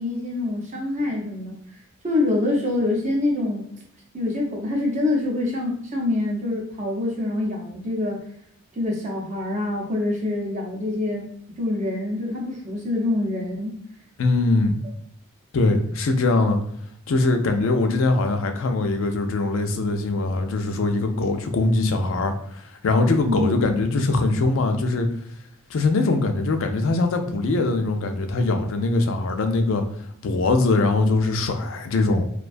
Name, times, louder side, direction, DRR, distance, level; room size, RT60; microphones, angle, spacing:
voice 1, 0.0-1.6 2.0-3.6 4.1-8.2 8.8-11.3 11.6-13.7 23.2-23.7, left 2 dB, 35° right, -1 dB, 0.5 m, -25 dB
voice 2, 14.2-14.8 15.5-16.6 17.1-22.3 22.8-25.1 25.7-29.8 30.2-32.3, left 2 dB, 65° left, 6 dB, 0.4 m, -22 dB
2.4 x 2.2 x 2.5 m, 0.67 s
head